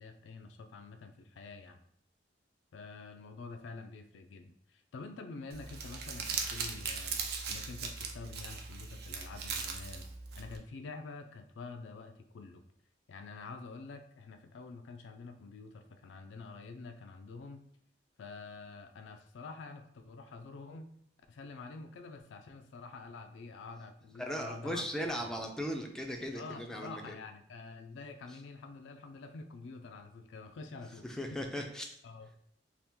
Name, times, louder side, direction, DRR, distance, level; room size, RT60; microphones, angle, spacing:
voice 1, 0.0-1.8 2.7-7.2 7.5-10.1 10.3-12.6 13.1-17.6 18.2-20.9 21.3-24.8 25.2-25.3 26.3-31.0 31.3-31.4 32.0-32.3, left 4 dB, 70° left, 6 dB, 0.4 m, -47 dB
Crumpling crinkling, 5.5-10.6, right 5 dB, 60° right, 0.5 m, -39 dB
voice 2, 24.2-27.2 31.0-32.0, equal, 5° left, 2 dB, 0.4 m, -37 dB
2.8 x 2.4 x 3.5 m, 0.69 s
head